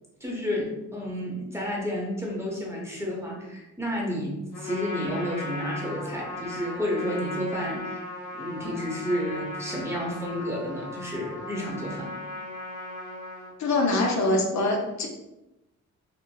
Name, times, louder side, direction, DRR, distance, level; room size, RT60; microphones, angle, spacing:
voice 1, 0.2-8.0 8.3-12.1, equal, 10° right, -3 dB, 0.7 m, -31 dB
Trumpet, 4.5-13.5, left 1 dB, 85° left, 1.0 m, -37 dB
voice 2, 13.6-15.1, left 2 dB, 65° left, 1 dB, 0.6 m, -24 dB
4.2 x 2.1 x 2.2 m, 0.94 s
cardioid pair, 110°, 30 cm